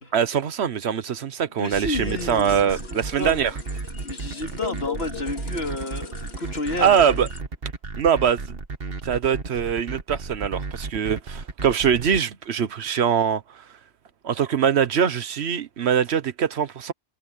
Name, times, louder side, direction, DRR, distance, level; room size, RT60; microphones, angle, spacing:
voice 1, 0.1-3.5 6.8-7.3 8.0-8.6 9.0-13.4 14.2-16.9, right 8 dB, 85° right, 1.2 m, -22 dB
voice 2, 1.6-3.5 4.0-7.2, left 2 dB, 70° left, 3.3 m, -31 dB
sound 1, 1.7-12.2, right 4 dB, 65° right, 1.8 m, -33 dB
sound 2, 2.0-7.4, left 7 dB, 90° left, 2.6 m, -39 dB
omnidirectional pair, 1.1 m